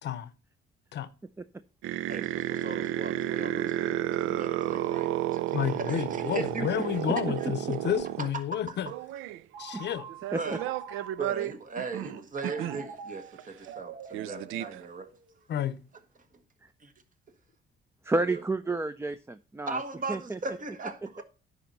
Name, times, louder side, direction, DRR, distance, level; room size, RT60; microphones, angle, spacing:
voice 1, 0.0-0.3 0.9-1.1 5.5-8.9 9.6-10.1 15.5-15.8, left 10 dB, 60° left, 0.7 m, -31 dB
sound 1, 1.8-8.3 8.8-9.4 10.1-12.8 13.4-13.5 13.7-13.8 14.1-14.8, right 13 dB, 90° right, 0.4 m, -32 dB
voice 2, 2.1-6.9 8.5-8.8 10.3-10.7 11.2-15.1 16.8-16.9 18.2-18.4 19.7-21.2, right 4 dB, 40° right, 1.3 m, -38 dB
Telephone, 9.5-11.5 12.4-15.4, right 6 dB, 60° right, 1.8 m, -45 dB
voice 3, 18.0-19.8 20.1-20.4, right 2 dB, 10° right, 0.4 m, -31 dB
10.5 x 4.2 x 5.3 m
cardioid pair, 90°, 20 cm